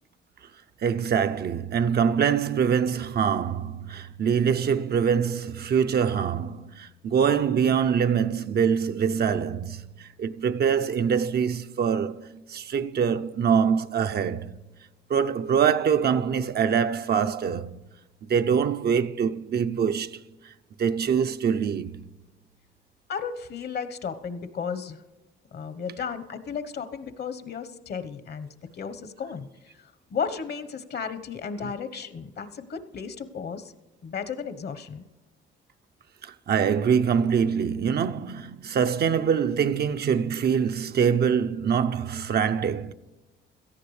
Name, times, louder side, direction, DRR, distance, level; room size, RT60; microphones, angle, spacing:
voice 1, 0.8-14.5 15.1-17.7 18.2-20.2 20.4-20.5 20.8-22.0 31.6-31.7 36.2-42.9, right 7 dB, 55° right, 0.6 m, -24 dB
voice 2, 23.1-25.0 25.5-28.5 28.7-29.7 30.1-33.7 34.0-35.0, left 6 dB, 55° left, 1.1 m, -34 dB
17.0 x 14.0 x 3.3 m
cardioid pair, 90°, 20 cm